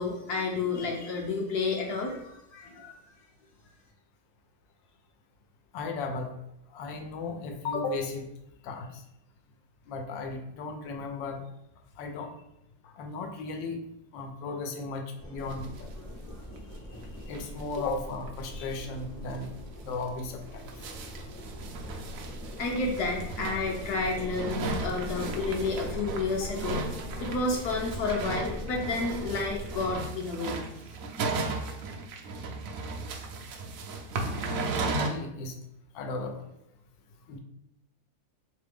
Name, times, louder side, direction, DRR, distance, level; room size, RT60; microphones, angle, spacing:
voice 1, 0.0-2.9 22.6-26.9 27.2-30.6, left 3 dB, 65° left, -1 dB, 1.2 m, -30 dB
voice 2, 5.7-6.3 6.7-8.3 8.6-9.0 9.9-11.4 12.0-12.3 12.8-13.8 14.1-15.9 17.3-19.5 19.8-20.7 34.8-35.6 35.9-36.5 37.3-37.4, left 3 dB, 85° left, 5 dB, 1.4 m, -35 dB
sound 1, 15.2-30.0, left 1 dB, 25° left, 0.3 m, -41 dB
sound 2, 15.5-16.0 16.3-16.4 16.6-16.7 17.0-17.1 17.3-17.9 18.3-18.4 18.7-18.8 19.3-19.5 20.0-35.1, right 3 dB, 75° right, 0.7 m, -36 dB
3.7 x 3.3 x 3.4 m, 0.83 s
omnidirectional pair, 2.0 m